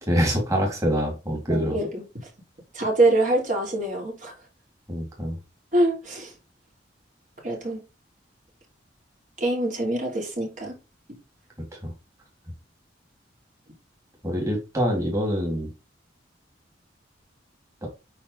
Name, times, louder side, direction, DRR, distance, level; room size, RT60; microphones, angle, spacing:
voice 1, 0.0-1.8 4.9-5.4 11.8-11.9 14.2-15.7 17.8-17.9, equal, 15° right, 2.8 m, -25 dB
voice 2, 1.5-2.0 2.7-4.3 5.7-6.3 7.4-7.8 9.4-10.8, right 2 dB, 45° right, 3.0 m, -24 dB
8.4 x 5.3 x 3.3 m
head